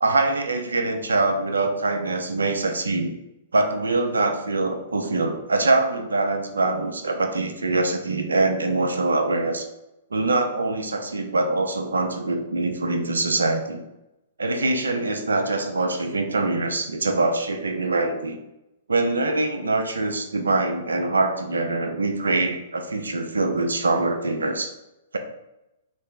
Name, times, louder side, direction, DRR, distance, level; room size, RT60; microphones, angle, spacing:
voice 1, 0.0-3.1 3.5-9.7 10.1-13.8 14.4-18.4 18.9-24.7, right 2 dB, 85° right, 5 dB, 0.5 m, -24 dB
3.1 x 2.5 x 3.8 m, 0.92 s
hypercardioid pair, 115°, 0 cm